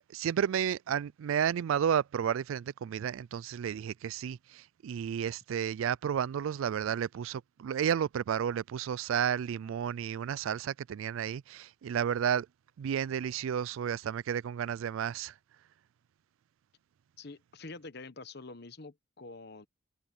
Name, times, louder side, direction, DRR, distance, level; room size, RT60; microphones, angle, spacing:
voice 1, 0.1-12.5 12.8-15.3, right 8 dB, 75° right, 0.3 m, -32 dB
voice 2, 17.2-19.7, left 3 dB, 50° left, 1.0 m, -46 dB
head